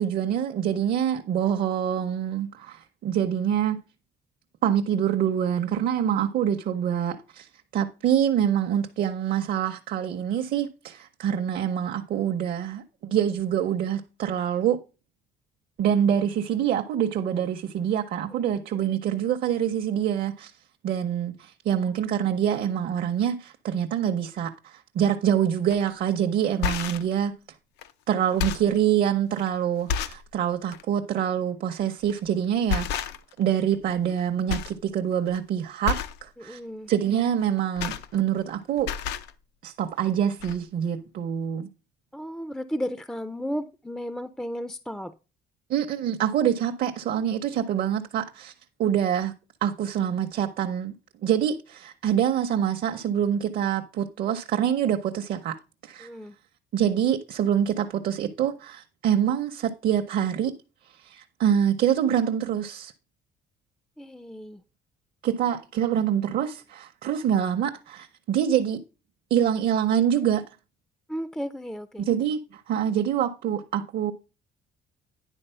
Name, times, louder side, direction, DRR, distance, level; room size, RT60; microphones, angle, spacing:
voice 1, 0.0-3.8 4.6-7.5 7.7-14.8 15.8-20.5 20.8-27.4 28.1-33.1 33.4-36.6 36.9-38.9 39.6-41.7 45.7-48.5 48.8-49.3 49.6-50.9 51.2-55.6 55.8-56.1 56.7-60.5 61.0-62.9 65.2-68.8 69.3-70.5 72.0-74.1, right 9 dB, 55° right, 0.7 m, -25 dB
sound 1, 25.7-25.9 26.4-27.1 27.8-27.9 28.2-28.8 29.4-29.5 29.9-30.3 30.7-30.9 32.0-32.3 32.7-33.4 33.7-34.2 34.5-34.8 35.1-35.4 35.8-36.2 37.4-38.5 38.8-39.3 40.1-40.2 40.4-40.6, left 7 dB, 90° left, 0.6 m, -30 dB
voice 2, 36.4-36.9 42.1-45.1 56.0-56.3 64.0-64.6 71.1-72.1, equal, 5° left, 0.4 m, -34 dB
10.0 x 3.9 x 5.5 m
cardioid pair, 110°, 17 cm